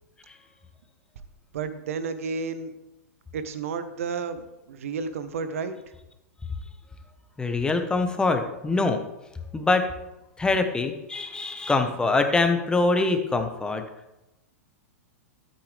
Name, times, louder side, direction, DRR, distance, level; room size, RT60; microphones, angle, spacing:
voice 1, 1.5-2.7 3.3-5.8, right 5 dB, 65° right, 11 dB, 1.1 m, -31 dB
voice 2, 7.4-9.0 9.5-9.9 10.4-13.8, left 3 dB, 10° left, 6 dB, 1.2 m, -24 dB
13.0 x 8.6 x 3.4 m, 0.94 s
figure-of-eight pair, 105°, 8 cm